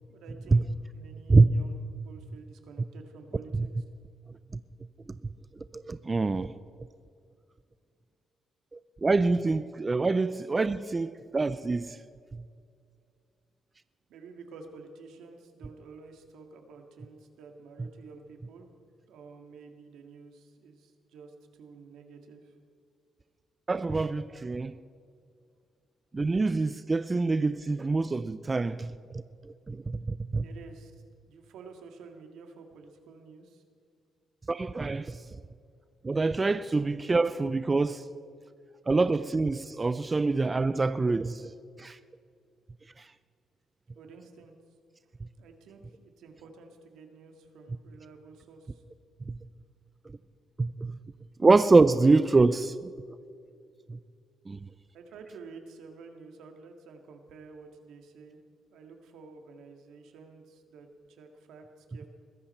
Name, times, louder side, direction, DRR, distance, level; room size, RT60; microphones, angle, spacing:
voice 1, 0.1-1.7 2.0-3.7 14.1-18.7 19.1-22.6 30.4-33.6 43.9-44.6 45.4-45.8 46.2-48.8 54.9-58.4 58.7-62.1, right 4 dB, 80° right, 2.0 m, -50 dB
voice 2, 5.7-6.5 8.7-12.0 23.7-24.8 26.1-30.4 34.5-35.2 36.0-38.1 38.9-41.5 41.8-42.0 43.0-43.1 49.3-49.4 50.6-51.0 51.4-52.9 53.9-54.0 54.5-54.7, right 3 dB, 25° right, 0.5 m, -25 dB
21.5 x 15.0 x 4.4 m
cardioid pair, 90°, 0 cm